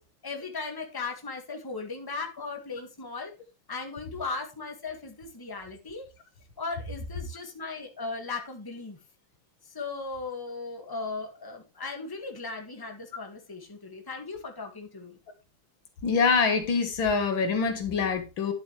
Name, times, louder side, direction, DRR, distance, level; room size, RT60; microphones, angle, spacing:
voice 1, 0.2-3.3 3.7-6.1 6.6-9.0 9.7-15.2, left 4 dB, 10° left, 1.7 m, -37 dB
voice 2, 16.0-18.5, left 5 dB, 70° left, 2.1 m, -25 dB
11.0 x 8.0 x 3.2 m
omnidirectional pair, 2.3 m